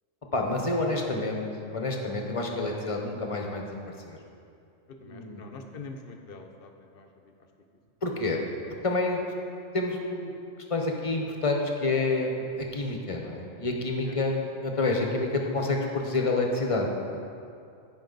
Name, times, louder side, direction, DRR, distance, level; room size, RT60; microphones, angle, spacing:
voice 1, 0.3-1.4 1.7-3.6 4.1-4.2 5.0-5.4 8.0-8.4 8.8-9.2 9.7-10.3 10.7-17.2, left 2 dB, 30° left, 1 dB, 0.9 m, -28 dB
voice 2, 4.9-7.1 14.1-14.2, left 3 dB, 50° left, 4 dB, 0.9 m, -44 dB
15.0 x 5.4 x 3.9 m, 2.4 s
omnidirectional pair, 1.4 m